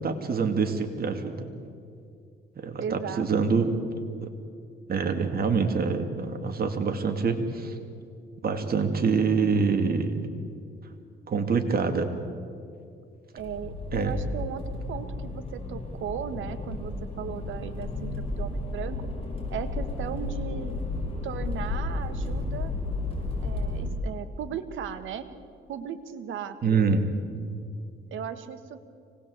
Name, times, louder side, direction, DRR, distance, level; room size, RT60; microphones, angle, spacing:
voice 1, 0.0-1.5 2.6-3.8 4.2-4.3 4.9-7.8 8.4-10.2 11.3-12.1 13.9-14.1 26.6-27.0, right 5 dB, 50° right, 6 dB, 2.8 m, -25 dB
voice 2, 2.8-3.6 13.3-19.1 19.5-20.8 21.2-22.7 23.4-25.3 25.7-27.0 28.1-28.8, right 8 dB, 75° right, 10 dB, 1.6 m, -37 dB
Accelerating revving vroom, 13.4-23.9, left 2 dB, 30° left, 6.8 m, -33 dB
25.0 x 19.5 x 8.2 m, 2.4 s
cardioid pair, 90°, 20 cm